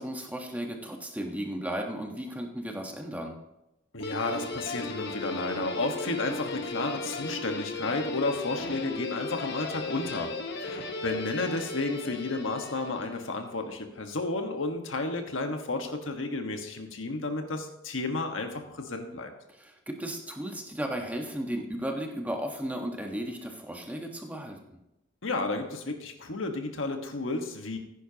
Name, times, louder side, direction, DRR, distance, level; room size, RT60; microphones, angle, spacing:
voice 1, 0.0-3.4 19.5-24.8, right 1 dB, 10° right, 2 dB, 1.2 m, -35 dB
voice 2, 3.9-10.3 10.6-19.3 25.2-27.8, left 2 dB, 85° left, 5 dB, 1.4 m, -32 dB
Guitar, 4.0-13.3, left 3 dB, 60° left, 1.2 m, -36 dB
15.5 x 10.0 x 2.9 m, 0.89 s
head